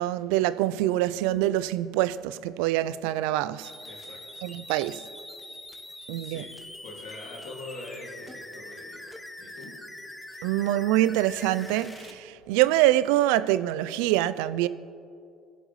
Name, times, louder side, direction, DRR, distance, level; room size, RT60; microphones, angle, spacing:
voice 1, 0.0-3.7 4.4-5.0 6.1-6.4 10.4-14.7, right 14 dB, 80° right, 0.3 m, -25 dB
sound 1, 3.6-12.1, left 1 dB, 10° left, 0.9 m, -43 dB
voice 2, 3.8-4.5 6.2-9.8 10.3-10.5, left 2 dB, 75° left, 2.2 m, -44 dB
17.0 x 7.9 x 3.1 m
hypercardioid pair, 75°, 0 cm